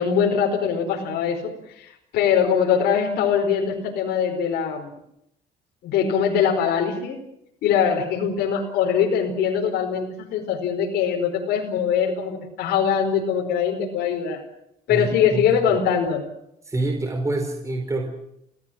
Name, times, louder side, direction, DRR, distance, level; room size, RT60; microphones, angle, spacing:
voice 1, 0.0-4.9 5.8-7.2 7.6-14.4 14.9-16.2, left 7 dB, 75° left, 0 dB, 4.9 m, -22 dB
voice 2, 14.9-15.5 16.6-18.1, right 2 dB, 20° right, 4 dB, 4.6 m, -26 dB
28.5 x 17.5 x 7.8 m, 0.78 s
cardioid pair, 110°, 17 cm